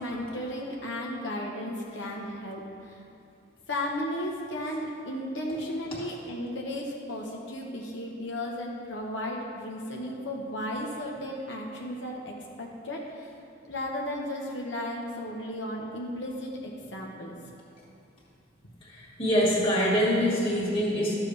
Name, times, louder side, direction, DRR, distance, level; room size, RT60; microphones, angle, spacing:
voice 1, 0.0-3.0 3.7-13.3 13.7-17.4, left 1 dB, 70° left, -1 dB, 1.1 m, -34 dB
voice 2, 18.8-21.1, equal, 30° left, -6 dB, 2.1 m, -25 dB
12.5 x 7.4 x 3.4 m, 2.7 s
head